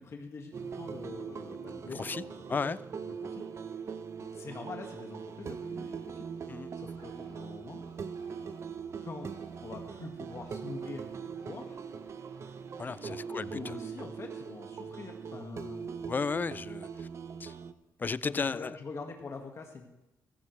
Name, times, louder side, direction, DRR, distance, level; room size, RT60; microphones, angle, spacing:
voice 1, 0.0-2.6 3.2-3.4 4.2-6.2 6.8-7.8 9.0-9.3 9.6-11.9 13.0-13.2 13.5-15.9 18.2-19.9, left 4 dB, 45° left, 1.8 m, -44 dB
sound 1, 0.5-17.7, right 6 dB, 45° right, 0.8 m, -41 dB
voice 2, 1.9-2.2 2.5-2.8 6.5-6.7 12.8-13.7 16.1-17.1 17.4-17.5 18.0-18.7, left 5 dB, 30° left, 0.4 m, -34 dB
Bird, 6.9-14.3, right 3 dB, 80° right, 2.6 m, -60 dB
15.0 x 14.5 x 3.3 m
cardioid pair, 85°, 7 cm